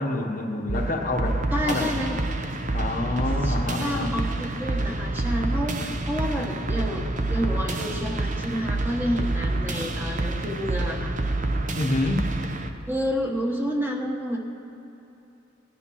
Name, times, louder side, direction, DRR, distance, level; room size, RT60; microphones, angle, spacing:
voice 1, 0.0-1.4 1.7-1.8 2.7-4.1 11.7-12.3, left 2 dB, 45° left, 2 dB, 1.1 m, -27 dB
sound 1, 0.7-12.7, right 2 dB, 40° right, 0.8 m, -28 dB
voice 2, 1.5-2.2 3.4-11.1 12.9-14.4, equal, 10° right, 0 dB, 1.2 m, -29 dB
18.5 x 9.9 x 5.7 m, 3.0 s
head